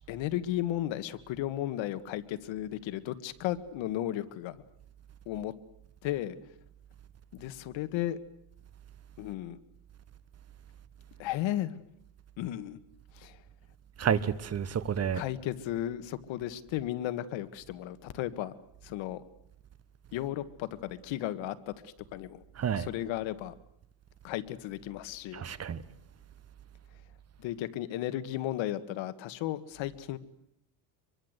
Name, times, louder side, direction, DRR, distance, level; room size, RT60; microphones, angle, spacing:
voice 1, 0.1-4.6 5.3-5.5 6.0-6.4 7.3-8.2 9.2-9.6 11.2-11.8 12.4-12.8 13.1-13.4 15.1-18.5 18.8-19.2 20.1-22.4 22.8-23.5 24.2-25.4 27.4-30.2, left 13 dB, 75° left, 1.8 m, -34 dB
voice 2, 14.0-15.2 22.6-22.9 25.3-25.8, right 8 dB, 35° right, 1.2 m, -30 dB
25.5 x 23.0 x 8.1 m
cardioid pair, 140°, 47 cm